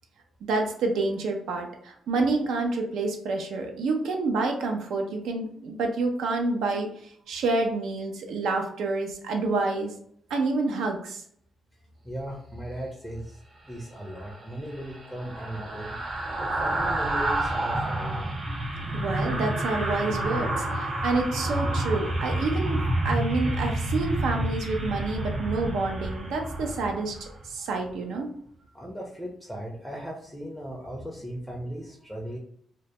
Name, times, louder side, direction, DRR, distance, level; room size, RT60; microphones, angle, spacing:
voice 1, 0.5-9.9 10.3-11.2 18.5-28.3, right 3 dB, 85° right, 3 dB, 0.5 m, -28 dB
voice 2, 12.0-18.3 28.7-32.4, equal, 5° left, 0 dB, 0.4 m, -37 dB
sound 1, 14.1-27.4 27.8-28.0, right 1 dB, 45° right, 0.7 m, -29 dB
2.1 x 2.1 x 2.7 m, 0.65 s
cardioid pair, 85°, 0 cm